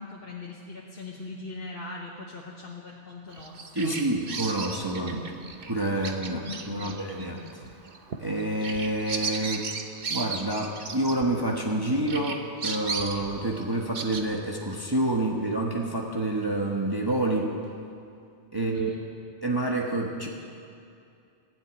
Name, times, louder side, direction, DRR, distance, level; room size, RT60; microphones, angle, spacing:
voice 1, 0.0-4.0 6.2-7.0 18.5-19.0, left 3 dB, 55° left, -4 dB, 1.5 m, -40 dB
Bird vocalization bird call bird song, 3.3-11.7 12.1-14.2, right 5 dB, 55° right, 1.1 m, -36 dB
voice 2, 3.7-5.3 5.7-6.4 6.7-7.4 8.2-9.7 10.1-17.6 18.5-18.9 19.4-20.3, right 1 dB, 20° right, -1 dB, 1.2 m, -28 dB
15.5 x 7.9 x 9.8 m, 2.4 s
omnidirectional pair, 1.2 m